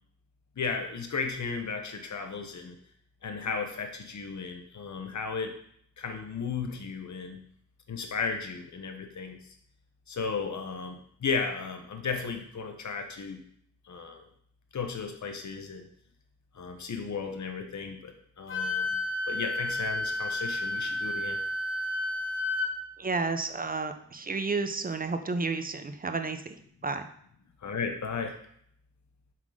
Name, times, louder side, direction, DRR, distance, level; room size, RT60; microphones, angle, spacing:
voice 1, 0.6-2.8 3.2-5.5 6.0-7.4 7.9-9.4 10.1-13.4 13.9-14.2 14.7-15.9 16.5-18.1 18.4-18.9 19.3-21.4 27.6-28.4, left 5 dB, 65° left, 5 dB, 1.0 m, -34 dB
Wind instrument woodwind instrument, 18.5-22.7, left 2 dB, 40° left, 1.3 m, -31 dB
voice 2, 23.0-26.6 26.8-27.1, right 4 dB, 30° right, 8 dB, 0.5 m, -31 dB
7.3 x 4.0 x 4.8 m, 0.66 s
wide cardioid pair, 115°, 30 cm